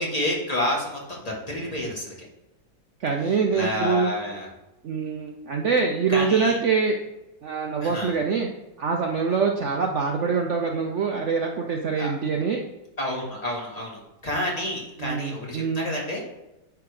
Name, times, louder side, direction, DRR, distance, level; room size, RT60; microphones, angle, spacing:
voice 1, 0.0-2.1 3.5-4.5 6.1-6.6 7.8-8.2 12.0-12.1 13.0-16.2, left 1 dB, 20° left, -3 dB, 1.6 m, -29 dB
voice 2, 3.0-4.1 4.8-7.0 7.4-8.5 8.8-12.6 15.0-15.9, right 5 dB, 85° right, 2 dB, 0.6 m, -24 dB
9.6 x 3.5 x 4.8 m, 0.95 s
omnidirectional pair, 2.1 m